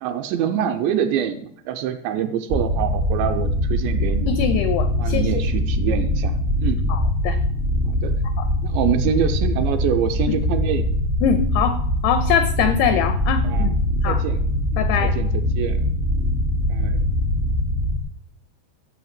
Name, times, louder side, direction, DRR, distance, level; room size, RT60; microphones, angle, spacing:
voice 1, 0.0-4.3 5.0-6.8 7.8-8.2 8.6-10.9 13.4-13.8 14.0-15.9 16.7-17.0, right 9 dB, 80° right, 7 dB, 2.8 m, -26 dB
sound 1, 2.5-18.0, left 1 dB, 60° right, 0.7 m, -22 dB
voice 2, 4.3-5.3 6.9-7.4 8.2-8.5 10.3-10.4 11.2-13.8 14.0-14.2 14.8-15.1, left 8 dB, 90° left, 10 dB, 2.3 m, -23 dB
14.0 x 5.9 x 8.8 m, 0.66 s
omnidirectional pair, 5.7 m